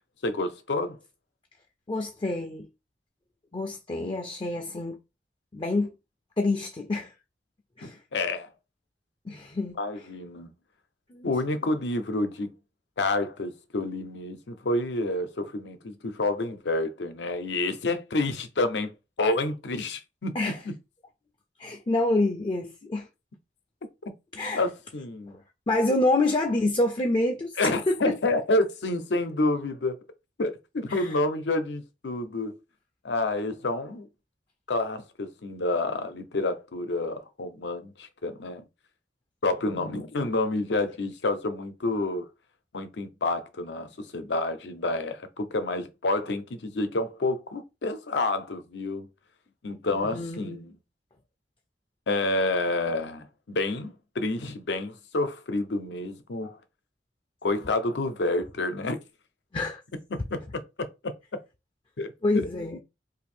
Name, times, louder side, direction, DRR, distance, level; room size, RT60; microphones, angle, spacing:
voice 1, 0.2-1.0 7.8-8.5 9.8-10.5 11.2-12.5 13.0-20.7 24.5-25.4 27.6-30.0 30.4-32.5 33.0-34.1 34.7-38.6 39.4-42.3 42.7-49.1 49.6-50.7 52.1-56.6 57.4-59.0 60.1-61.1 62.0-62.8, left 2 dB, 80° left, 0.6 m, -29 dB
voice 2, 1.9-2.7 3.5-5.0 5.5-5.9 6.4-7.1 7.8-8.0 9.3-9.8 11.1-11.3 20.4-20.6 21.6-23.1 24.3-24.6 25.3-25.4 25.7-28.0 30.9-31.1 39.7-40.0 49.9-50.5 59.5-59.8 62.2-62.8, left 2 dB, 30° left, 0.4 m, -27 dB
2.6 x 2.6 x 4.2 m
head